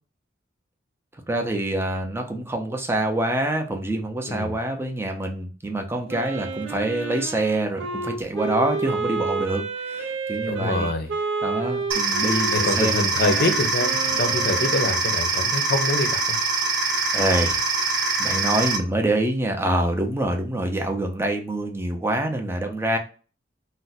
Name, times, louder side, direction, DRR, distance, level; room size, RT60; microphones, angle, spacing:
voice 1, 1.3-10.9 11.4-12.9 13.2-13.6 14.3-14.4 17.1-17.6 18.2-23.0, right 1 dB, 15° right, 3 dB, 0.5 m, -26 dB
voice 2, 4.3-4.6 10.5-11.1 12.5-16.4, left 2 dB, 55° left, 7 dB, 0.6 m, -25 dB
Wind instrument woodwind instrument, 6.1-15.0, right 4 dB, 65° right, 0.5 m, -30 dB
sound 1, 11.9-18.8, right 3 dB, 85° right, 1.0 m, -24 dB
2.5 x 2.1 x 4.0 m, 0.37 s
head